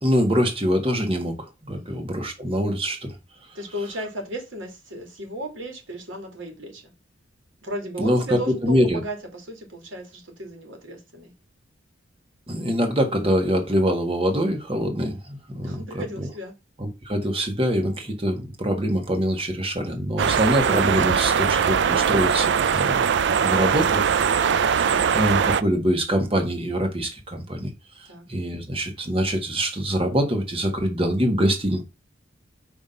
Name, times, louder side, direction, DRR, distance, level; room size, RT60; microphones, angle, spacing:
voice 1, 0.0-3.2 8.0-9.0 12.5-16.3 16.8-31.8, equal, 30° right, 1.5 m, -24 dB
voice 2, 1.7-2.0 3.5-6.9 7.6-11.3 15.6-16.5 28.1-28.2, equal, 80° right, 2.3 m, -35 dB
sound 1, 20.2-25.6, right 7 dB, 60° right, 0.4 m, -21 dB
5.3 x 3.5 x 5.6 m
head